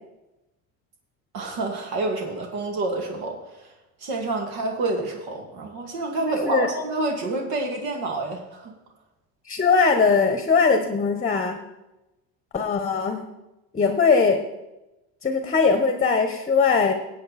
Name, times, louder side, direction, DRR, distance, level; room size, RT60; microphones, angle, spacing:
voice 1, 1.3-3.7 4.0-8.7, right 2 dB, 65° right, 2 dB, 2.4 m, -28 dB
voice 2, 6.3-6.7 9.5-11.6 12.5-13.2 13.7-14.4 15.2-16.9, left 5 dB, 20° left, 7 dB, 1.0 m, -20 dB
17.0 x 8.2 x 4.2 m, 0.97 s
cardioid pair, 125°, 39 cm